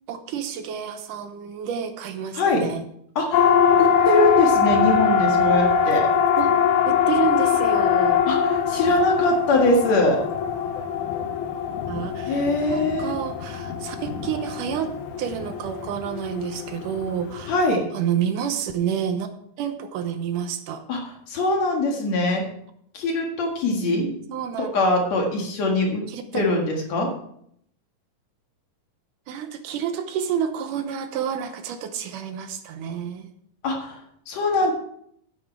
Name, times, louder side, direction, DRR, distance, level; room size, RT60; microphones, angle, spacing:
voice 1, 0.1-2.8 6.4-6.6 6.9-8.3 11.9-17.6 17.9-19.3 19.6-20.8 23.9-24.7 26.1-26.4 29.3-33.3 34.6-34.7, right 8 dB, 75° right, 8 dB, 2.3 m, -29 dB
voice 2, 3.2-6.1 8.3-10.2 12.3-13.1 17.5-17.8 20.9-21.0 21.3-22.4 22.9-24.0 24.6-26.0 26.3-27.1 33.6-34.0 34.3-34.7, left 2 dB, 55° left, 1 dB, 2.8 m, -22 dB
Siren, 3.3-17.6, left 7 dB, 75° left, 2.2 m, -22 dB
9.4 x 9.2 x 4.5 m, 0.69 s
omnidirectional pair, 3.8 m